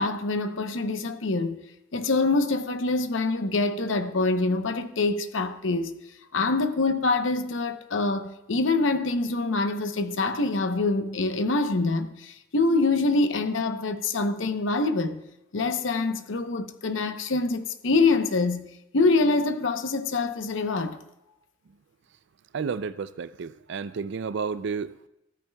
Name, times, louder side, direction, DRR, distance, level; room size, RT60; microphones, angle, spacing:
voice 1, 0.0-1.6 1.9-5.9 6.3-15.2 15.5-18.7 18.9-21.0, left 3 dB, 70° left, 0.8 m, -25 dB
voice 2, 22.5-25.1, right 5 dB, 65° right, 0.4 m, -31 dB
15.0 x 13.5 x 2.3 m
head